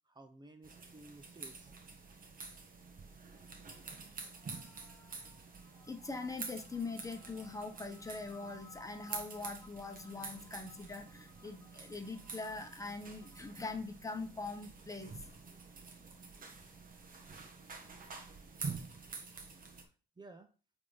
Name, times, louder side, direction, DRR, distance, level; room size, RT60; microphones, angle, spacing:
voice 1, 0.0-1.8 19.8-20.5, right 2 dB, 20° right, 5 dB, 0.8 m, -55 dB
sound 1, 0.6-19.8, right 4 dB, 45° right, 1.5 m, -48 dB
voice 2, 4.4-5.4 5.7-15.1, left 3 dB, 15° left, 5 dB, 1.1 m, -43 dB
8.3 x 3.7 x 4.0 m, 0.37 s
cardioid pair, 90°, 20 cm